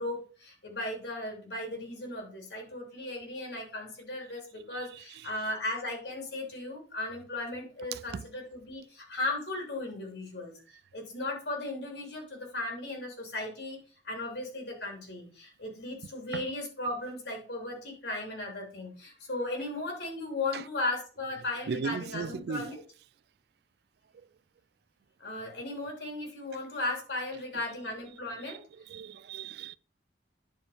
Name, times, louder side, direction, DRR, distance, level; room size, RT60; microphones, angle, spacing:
voice 1, 0.0-10.5 10.9-13.8 14.0-22.8 25.2-28.6, left 2 dB, 70° left, 3.3 m, -36 dB
voice 2, 21.7-22.6 28.9-29.8, right 5 dB, 60° right, 0.3 m, -35 dB
10.0 x 4.5 x 5.0 m
head